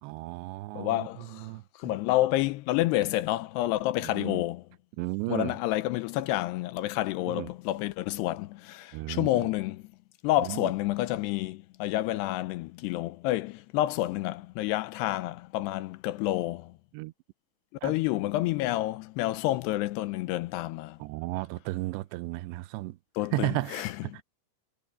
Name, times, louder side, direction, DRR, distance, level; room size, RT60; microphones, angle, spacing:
voice 1, 0.0-1.6 4.0-4.4 5.0-5.5 7.3-7.5 8.9-9.5 10.5-10.7 16.9-17.1 17.8-17.9 21.0-23.0 23.3-24.2, right 19 dB, 80° right, 2.6 m, -34 dB
voice 2, 0.7-1.5 1.8-4.6 5.3-9.8 10.2-16.7 17.8-21.0 23.2-23.9, left 16 dB, 80° left, 2.5 m, -29 dB
omnidirectional pair, 5.4 m